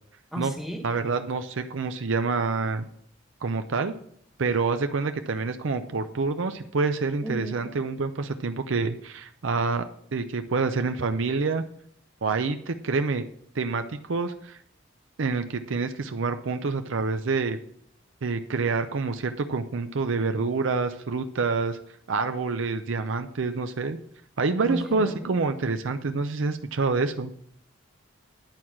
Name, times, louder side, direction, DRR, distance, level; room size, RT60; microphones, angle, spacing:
voice 1, 0.3-0.8 7.2-7.6 24.6-25.3, right 1 dB, ahead, 0 dB, 1.1 m, -33 dB
voice 2, 0.8-2.9 3.4-3.9 4.4-11.6 12.2-13.3 13.5-14.6 15.2-17.6 18.2-21.8 22.1-24.0 24.4-27.3, right 4 dB, 65° right, 8 dB, 0.6 m, -27 dB
10.5 x 4.7 x 7.3 m, 0.67 s
head